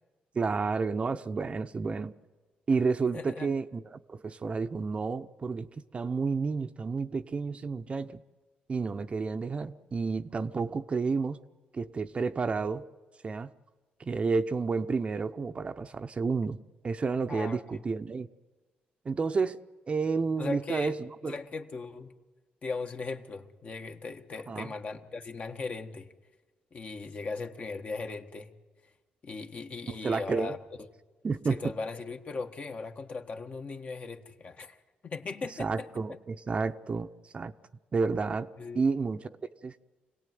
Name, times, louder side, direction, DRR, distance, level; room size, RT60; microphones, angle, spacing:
voice 1, 0.3-2.1 2.7-8.2 8.7-11.4 11.7-12.9 13.2-13.5 14.0-16.6 16.8-18.3 19.0-19.6 19.9-21.4 24.5-24.7 29.9-30.6 31.2-31.6 35.6-37.5 37.9-39.3 39.6-39.8, right 4 dB, 35° right, 9 dB, 0.8 m, -30 dB
voice 2, 3.1-3.5 17.3-17.9 20.4-20.9 21.2-22.1 22.6-26.1 26.7-28.5 29.2-30.6 31.5-34.8 35.0-36.2 38.6-38.8, left 4 dB, 45° left, 5 dB, 1.5 m, -38 dB
26.0 x 18.0 x 9.4 m, 1.2 s
cardioid pair, 90°, 3 cm